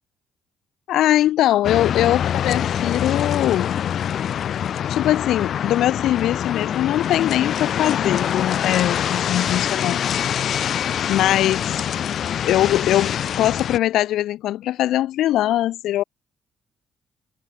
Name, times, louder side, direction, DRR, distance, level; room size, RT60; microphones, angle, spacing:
voice 1, 0.9-3.8 4.9-10.0 11.1-11.8 12.4-16.0, left 13 dB, 85° left, 0.9 m, -21 dB
sound 1, 1.6-13.8, left 9 dB, 65° left, 1.7 m, -24 dB
cardioid pair, 90°, 0 cm